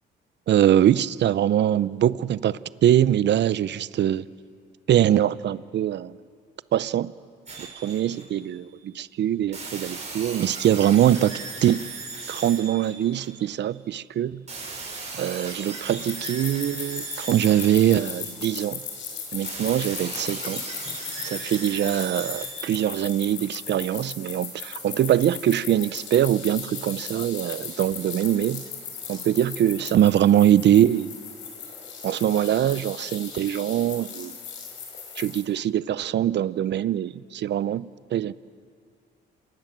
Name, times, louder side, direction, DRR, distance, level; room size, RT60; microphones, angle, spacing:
voice 1, 0.5-4.3 4.9-6.2 6.7-7.1 7.8-11.9 12.3-14.4 15.1-18.8 19.3-20.6 21.2-28.6 29.1-31.1 32.0-34.3 35.2-38.3, right 11 dB, 65° right, 17 dB, 0.7 m, -23 dB
sound 1, 7.5-8.6 9.5-13.6 14.5-18.6 19.4-23.5, right 4 dB, 35° right, 7.5 m, -38 dB
sound 2, 16.1-35.4, left 6 dB, 70° left, 5.5 m, -37 dB
27.5 x 18.5 x 7.5 m, 2.3 s
cardioid pair, 90°, 20 cm